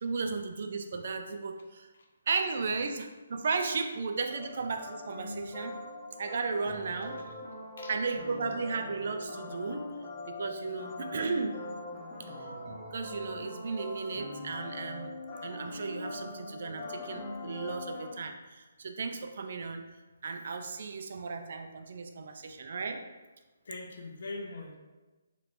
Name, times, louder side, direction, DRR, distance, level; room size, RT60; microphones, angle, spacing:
voice 1, 0.0-1.9 2.3-5.8 6.2-7.2 7.9-9.9 10.3-11.6 12.4-12.5 12.9-15.1 15.4-19.8 20.2-23.0, right 4 dB, 60° right, 5 dB, 0.3 m, -35 dB
sound 1, 4.3-18.1, left 2 dB, 20° left, 0.7 m, -42 dB
voice 2, 7.0-7.3 7.8-8.0 23.6-24.8, left 2 dB, 65° left, 1 dB, 0.6 m, -42 dB
3.1 x 3.0 x 2.6 m, 1.2 s
hypercardioid pair, 150°, 0 cm